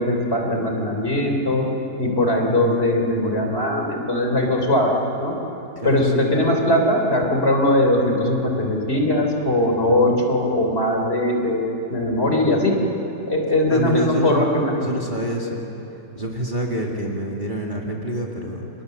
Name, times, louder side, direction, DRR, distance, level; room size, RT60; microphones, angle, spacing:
voice 1, 0.0-1.6 2.0-4.9 5.2-5.3 5.8-12.7 13.3-14.9, left 1 dB, 35° left, 1 dB, 3.7 m, -20 dB
voice 2, 5.8-6.3 13.7-14.4 14.8-15.6 16.1-18.7, right 1 dB, 25° right, -1 dB, 2.4 m, -27 dB
30.0 x 27.5 x 6.8 m, 3.0 s
omnidirectional pair, 1.9 m